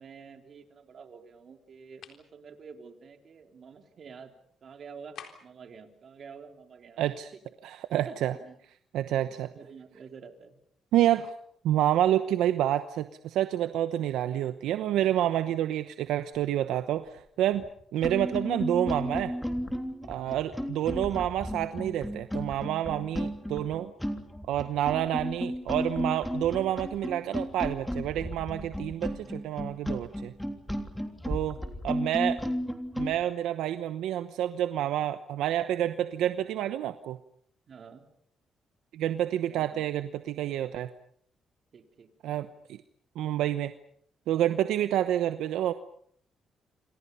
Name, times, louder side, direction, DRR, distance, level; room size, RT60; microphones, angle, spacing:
voice 1, 0.0-4.3 4.6-7.0 7.3-7.4 7.9-8.6 9.1-10.6 20.1-20.4 29.2-29.4 31.6-31.8 37.7-38.0 39.5-39.9 41.7-42.1, right 6 dB, 50° right, 5 dB, 3.8 m, -49 dB
sound 1, 2.0-2.3 5.1-5.6, left 8 dB, 70° left, 3.9 m, -46 dB
voice 2, 7.0-7.3 7.6-8.3 8.9-9.5 10.9-11.3 11.6-17.6 17.9-19.3 20.1-23.9 24.5-30.3 31.3-31.6 31.8-32.4 33.0-37.2 38.9-40.9 42.2-42.8 43.2-43.7 44.3-45.7, right 12 dB, 85° right, 11 dB, 0.9 m, -28 dB
sound 2, 17.5-17.7 18.0-33.2, equal, 5° left, 3.4 m, -33 dB
27.5 x 27.0 x 5.6 m, 0.64 s
cardioid pair, 90°, 0 cm